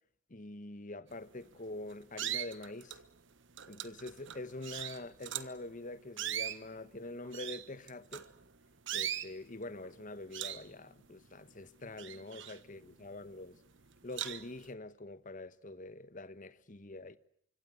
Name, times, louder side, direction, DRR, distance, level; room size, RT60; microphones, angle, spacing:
voice 1, 0.3-3.0 3.7-8.3 8.9-13.6 14.0-17.2, left 2 dB, 40° left, 1.1 m, -45 dB
sound 1, 1.3-1.6 2.1-3.1 3.6-5.6 6.1-8.5 8.9-9.3 9.8-10.0 10.3-11.5 11.8-13.1 13.5-13.6 14.1-14.6, right 11 dB, 60° right, 1.3 m, -40 dB
25.0 x 24.5 x 8.1 m
head